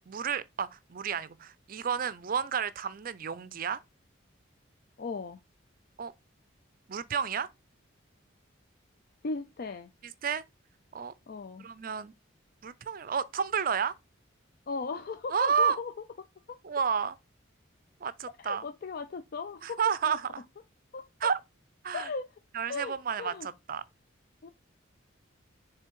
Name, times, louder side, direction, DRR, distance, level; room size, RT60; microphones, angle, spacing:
voice 1, 0.1-3.8 6.0-6.1 6.9-7.5 10.2-10.4 10.9-11.1 11.6-12.1 12.6-14.0 15.3-15.8 16.6-17.2 18.0-18.6 19.6-20.2 21.2-21.4 21.8-22.1 22.5-23.8, right 7 dB, 45° right, 0.5 m, -31 dB
voice 2, 5.0-5.4 9.2-9.9 11.3-11.7 14.7-16.6 18.4-19.8 20.1-20.2 20.9-21.0 21.9-22.3 22.7-23.5 24.4-24.5, left 4 dB, 50° left, 0.4 m, -37 dB
6.9 x 3.4 x 4.5 m
head